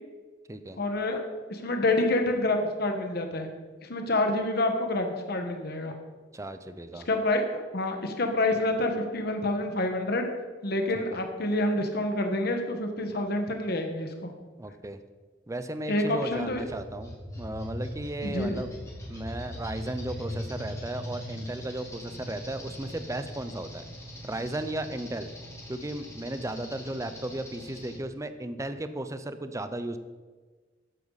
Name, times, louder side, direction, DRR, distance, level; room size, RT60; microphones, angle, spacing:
voice 1, 0.8-1.2 1.5-3.5 3.8-5.9 7.1-7.4 7.7-10.3 10.6-14.3 15.9-16.6 18.2-18.5, left 2 dB, 60° left, 4 dB, 1.5 m, -27 dB
voice 2, 6.3-7.1 10.9-11.2 14.6-15.0 15.5-18.7 19.1-23.8 24.2-25.3 25.7-30.0, right 1 dB, 15° right, 10 dB, 0.6 m, -35 dB
sound 1, 16.1-28.0, equal, 15° left, 3.3 m, -40 dB
14.0 x 10.0 x 4.1 m, 1.4 s
head